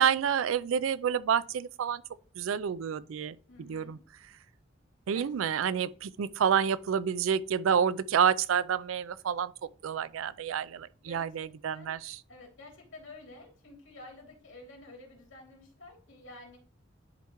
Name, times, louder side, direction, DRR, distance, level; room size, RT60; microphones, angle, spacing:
voice 1, 0.0-2.0 2.4-4.0 5.1-9.5 9.8-12.2, right 8 dB, 85° right, 0.4 m, -29 dB
voice 2, 3.5-4.0 5.1-5.3 11.0-12.0 12.3-16.6, left 2 dB, 70° left, 2.7 m, -50 dB
10.5 x 4.4 x 3.0 m
head